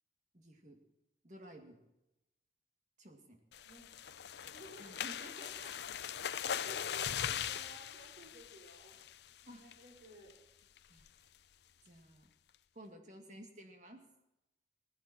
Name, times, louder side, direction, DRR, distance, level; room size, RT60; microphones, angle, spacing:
voice 1, 0.3-0.8 1.2-1.8 3.0-3.4 4.8-5.7 9.5-9.6 10.9-11.1 11.8-12.3 12.7-14.1, equal, 40° right, 4 dB, 2.2 m, -53 dB
sound 1, 3.5-9.3 9.7-10.0 10.3-10.4 10.8-11.1, left 9 dB, 65° left, 0.5 m, -40 dB
voice 2, 4.5-5.0 6.4-9.0 9.5-10.4, right 1 dB, 65° right, -1 dB, 4.7 m, -55 dB
18.5 x 15.5 x 4.4 m, 0.93 s
head